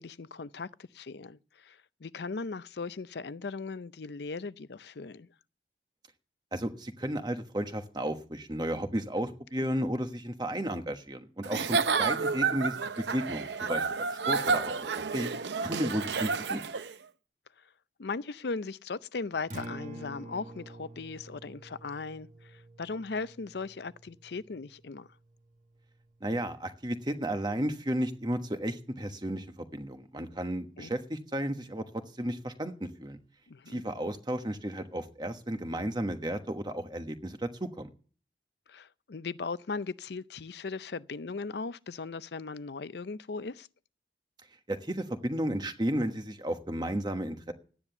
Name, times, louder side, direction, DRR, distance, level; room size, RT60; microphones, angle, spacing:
voice 1, 0.0-5.3 9.6-9.7 11.7-11.8 18.0-25.1 30.8-30.9 33.5-33.8 38.7-43.7, left 4 dB, 65° left, 0.5 m, -38 dB
voice 2, 6.5-14.7 15.1-15.3 15.6-16.6 26.2-31.8 32.2-33.2 33.7-37.9 44.7-47.5, right 1 dB, 25° right, 1.2 m, -33 dB
Giggle / Chuckle chortle, 11.4-16.9, right 5 dB, 75° right, 0.7 m, -30 dB
Acoustic guitar, 19.4-27.6, right 1 dB, 45° right, 1.5 m, -49 dB
12.5 x 9.9 x 7.0 m
head